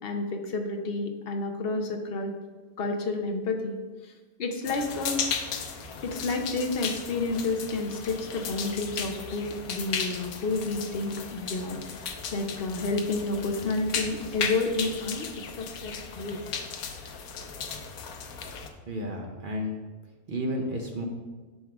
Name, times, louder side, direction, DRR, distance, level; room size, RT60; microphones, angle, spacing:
voice 1, 0.0-2.3 2.8-4.1 4.4-5.2 6.0-15.3 15.6-16.4, left 3 dB, 60° left, 5 dB, 0.6 m, -30 dB
sound 1, 4.6-18.7, left 6 dB, 85° left, 1.2 m, -36 dB
voice 2, 18.9-19.8 20.3-21.0, equal, 60° right, 1 dB, 0.5 m, -32 dB
5.3 x 3.6 x 5.8 m, 1.3 s
omnidirectional pair, 1.5 m